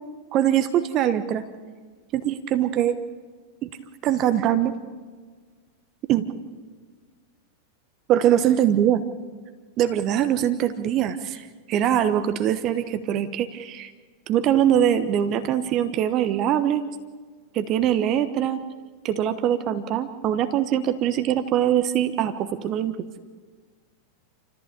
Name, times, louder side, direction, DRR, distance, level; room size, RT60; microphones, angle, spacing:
voice 1, 0.3-1.4 2.1-3.0 3.6-3.7 4.0-4.7 6.1-6.3 8.1-9.0 9.8-13.9 14.3-16.8 17.5-18.6 19.0-23.0, right 10 dB, 35° right, 10 dB, 1.1 m, -22 dB
28.0 x 14.5 x 8.2 m, 1.5 s
figure-of-eight pair, 90°, 0 cm